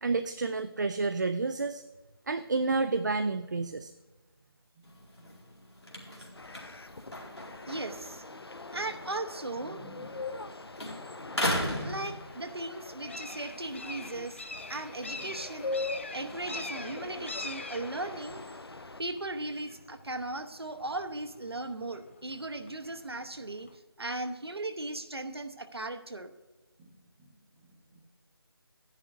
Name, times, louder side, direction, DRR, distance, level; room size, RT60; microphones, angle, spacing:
voice 1, 0.0-1.8 2.3-3.9, right 3 dB, 45° right, 10 dB, 0.4 m, -30 dB
voice 2, 4.7-5.3 5.8-6.0 8.3-8.4 9.6-10.2 15.1-15.3 16.1-16.6 26.8-28.0, right 1 dB, 10° right, 0 dB, 0.7 m, -53 dB
sound 1, 4.8-10.5 10.7-12.8 13.2-16.3, left 1 dB, 90° left, 2.2 m, -39 dB
sound 2, 6.3-19.0, left 3 dB, 75° left, 0.7 m, -42 dB
voice 3, 7.7-8.2 8.7-9.8 11.8-14.4 14.7-15.8 16.1-18.4 19.0-23.7 24.0-26.3, right 2 dB, 80° right, 7 dB, 0.9 m, -37 dB
sound 3, 10.0-23.8, left 3 dB, 30° left, 0.3 m, -46 dB
12.5 x 10.0 x 2.6 m, 1.2 s
figure-of-eight pair, 160°, 13 cm